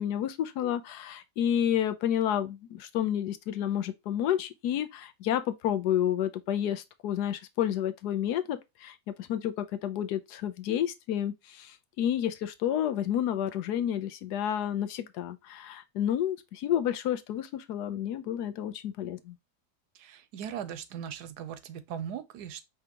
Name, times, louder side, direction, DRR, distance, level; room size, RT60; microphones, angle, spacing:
voice 1, 0.0-19.4, left 10 dB, 85° left, 1.3 m, -30 dB
voice 2, 19.9-22.6, right 9 dB, 85° right, 1.3 m, -39 dB
5.0 x 3.4 x 2.8 m
omnidirectional pair, 1.7 m